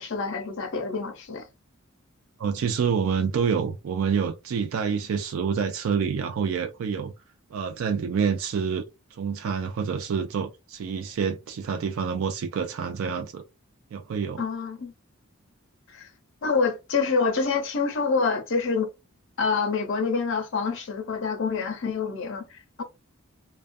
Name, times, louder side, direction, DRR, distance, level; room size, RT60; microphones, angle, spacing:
voice 1, 0.0-1.4 14.4-14.9 15.9-16.1 16.4-18.9 19.4-22.8, left 4 dB, 60° left, 0.6 m, -27 dB
voice 2, 2.4-7.1 7.5-8.8 9.1-13.4 13.9-14.4, right 6 dB, 70° right, 0.3 m, -27 dB
2.3 x 2.1 x 2.5 m
head